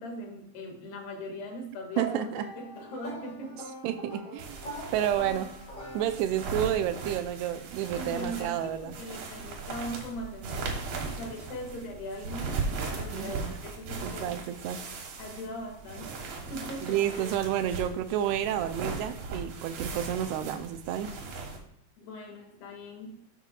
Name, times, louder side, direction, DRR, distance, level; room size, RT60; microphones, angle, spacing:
voice 1, 0.0-3.6 4.8-5.0 7.9-14.4 15.2-16.2 16.5-17.3 22.0-23.2, equal, 80° left, 1 dB, 4.0 m, -40 dB
sound 1, 1.9-6.6, right 1 dB, 50° left, 5.4 m, -42 dB
voice 2, 2.0-2.5 3.8-4.6 4.9-5.5 5.9-9.0 13.1-13.5 14.0-14.8 16.8-21.1, right 11 dB, 90° right, 9 dB, 2.7 m, -30 dB
Bed Sheets Rustling, 4.4-21.6, right 4 dB, 70° right, 3.2 m, -38 dB
14.5 x 7.4 x 2.4 m, 0.77 s
omnidirectional pair, 4.5 m